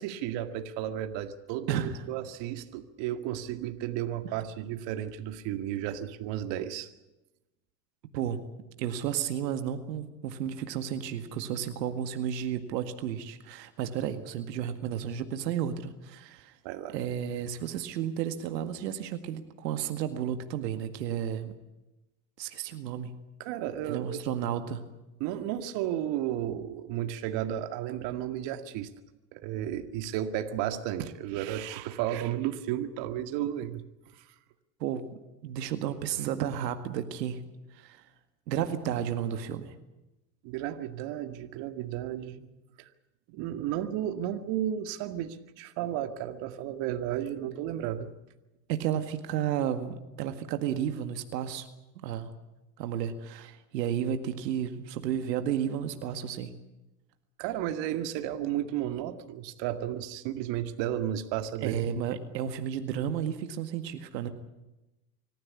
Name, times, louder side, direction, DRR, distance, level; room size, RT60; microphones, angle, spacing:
voice 1, 0.0-6.9 16.6-17.0 23.4-24.2 25.2-28.9 29.3-33.8 34.1-34.3 40.4-42.5 42.8-42.9 43.3-48.1 57.4-61.8, right 11 dB, 60° right, 8 dB, 2.1 m, -33 dB
voice 2, 1.7-2.0 8.1-8.4 8.8-16.6 16.9-21.5 22.4-23.1 23.9-24.8 34.8-35.0 35.4-37.4 37.7-38.0 38.5-39.7 48.7-51.7 52.0-52.3 52.8-56.5 61.6-64.3, right 9 dB, 85° right, 8 dB, 2.0 m, -32 dB
25.5 x 15.0 x 9.9 m, 1.0 s
supercardioid pair, 100°, 48 cm